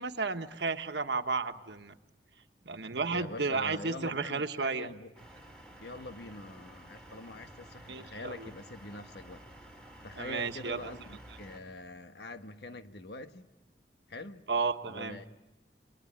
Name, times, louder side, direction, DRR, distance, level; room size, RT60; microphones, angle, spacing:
voice 1, 0.0-1.9 2.6-4.9 7.9-8.5 10.2-10.9 14.5-15.2, right 4 dB, 75° right, 1.3 m, -33 dB
voice 2, 3.1-5.1 5.8-9.4 9.8-13.5 14.1-14.5 14.9-15.3, left 2 dB, 70° left, 1.3 m, -44 dB
sound 1, 5.2-11.6, right 1 dB, 5° left, 3.0 m, -52 dB
30.0 x 22.5 x 8.7 m
head